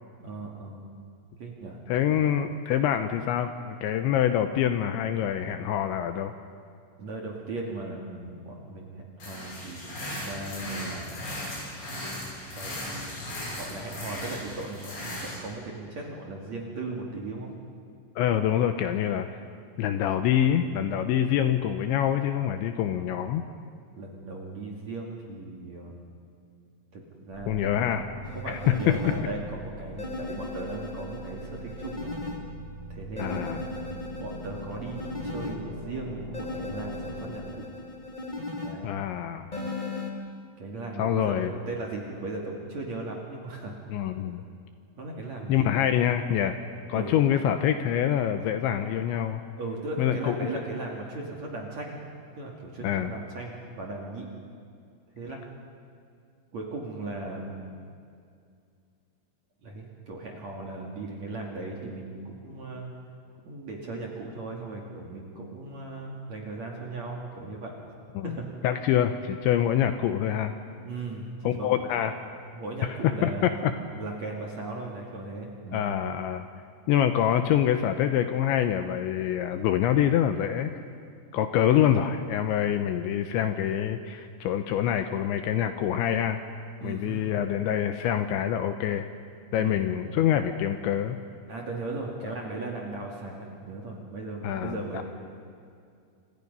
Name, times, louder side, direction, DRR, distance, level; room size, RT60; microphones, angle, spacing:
voice 1, 0.2-0.9 1.4-1.8 2.1-2.3 7.0-11.4 12.5-13.0 13.6-17.5 24.0-26.2 26.9-28.0 28.3-32.1 32.9-37.7 38.6-38.9 40.6-43.8 45.0-45.9 46.9-47.2 49.6-52.0 52.3-54.3 55.2-55.4 56.5-57.6 59.6-62.9 63.5-67.7 68.2-68.5 70.8-71.9 72.5-73.6 73.9-75.9 86.8-87.3 89.6-89.8 91.5-95.0, right 2 dB, 45° right, -1 dB, 2.7 m, -37 dB
voice 2, 1.9-6.3 18.2-19.4 19.8-23.4 27.5-28.1 28.5-29.0 33.2-33.6 38.8-39.5 41.0-41.5 43.9-44.4 45.5-46.6 46.9-49.4 50.0-50.5 52.8-53.1 68.2-68.4 68.6-70.5 71.4-72.2 72.8-73.7 75.7-76.5 76.9-80.8 81.3-86.4 86.8-89.1 89.5-91.2 94.4-95.0, left 10 dB, 75° left, 7 dB, 2.9 m, -25 dB
sound 1, 9.2-15.4, left 1 dB, 60° left, 10.0 m, -37 dB
sound 2, 27.3-37.2, right 1 dB, 25° right, 6.8 m, -42 dB
sound 3, 28.2-29.2 30.0-32.4 33.2-35.5 36.3-38.7 39.5-40.1, left 3 dB, 25° left, 1.0 m, -37 dB
29.0 x 26.0 x 5.5 m, 2.3 s
omnidirectional pair, 5.9 m